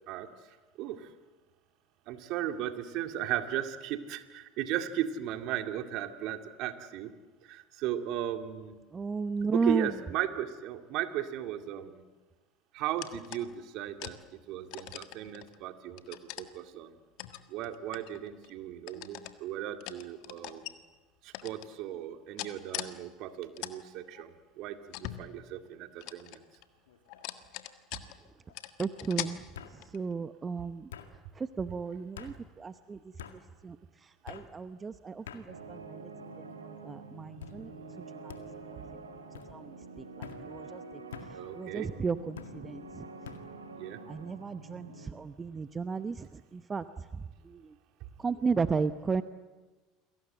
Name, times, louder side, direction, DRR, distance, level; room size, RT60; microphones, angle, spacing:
voice 1, 0.8-1.1 2.1-7.1 7.4-8.8 9.5-12.0 12.7-14.2 14.5-16.9 17.5-20.7 21.2-26.4 32.2-32.3 41.3-41.9 43.8-44.0, right 11 dB, 55° right, 7 dB, 2.2 m, -36 dB
voice 2, 8.9-9.9 28.8-29.4 29.9-30.9 31.4-33.0 33.6-33.8 34.2-36.0 36.6-37.7 38.2-38.3 39.5-39.7 40.2-40.8 41.5-43.1 44.1-46.8 47.5-47.6 48.2-49.2, right 5 dB, 25° right, 12 dB, 0.9 m, -33 dB
sound 1, 13.0-13.5 14.0-14.2 14.7-15.6 16.0-16.5 17.2-18.5 18.9-19.3 19.8-20.7 21.3-21.7 22.4-22.9 23.3-23.7 24.1-24.2 24.9-25.7 26.0-26.7 27.1-28.3 28.5-29.3 29.8-30.1, left 16 dB, 60° left, 1.6 m, -41 dB
sound 2, 26.1-26.5 26.9-27.4 28.5-28.6 29.5-29.8 30.9-31.1 32.2-32.3 33.2-33.4 34.3-34.5 35.3-35.4 36.2-36.6 37.4-37.6 38.3-38.4 39.3-39.5 40.2-40.4 41.1-41.3 42.4-42.6 43.2-43.4, left 8 dB, 75° left, 2.0 m, -46 dB
sound 3, 35.5-45.1, right 3 dB, 90° right, 2.3 m, -47 dB
29.5 x 22.0 x 8.0 m, 1.3 s
figure-of-eight pair, 70°, 0 cm